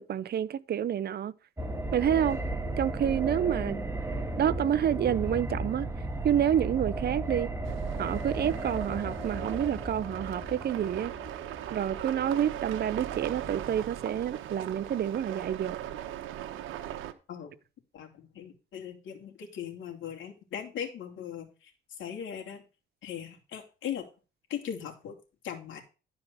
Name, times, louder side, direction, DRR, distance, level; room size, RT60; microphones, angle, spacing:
voice 1, 0.0-1.3 1.9-2.4 2.8-3.8 4.4-5.9 6.2-7.5 8.0-11.1 11.7-15.8, right 9 dB, 55° right, 0.7 m, -28 dB
sound 1, 1.6-13.4 13.7-13.8, right 2 dB, 15° right, 1.8 m, -35 dB
sound 2, 7.6-17.1, right 12 dB, 90° right, 1.1 m, -39 dB
voice 2, 17.9-21.5 22.0-22.6 23.0-24.0 24.5-25.1 25.4-25.8, left 8 dB, 75° left, 3.0 m, -39 dB
12.0 x 5.0 x 6.2 m
cardioid pair, 90°, 20 cm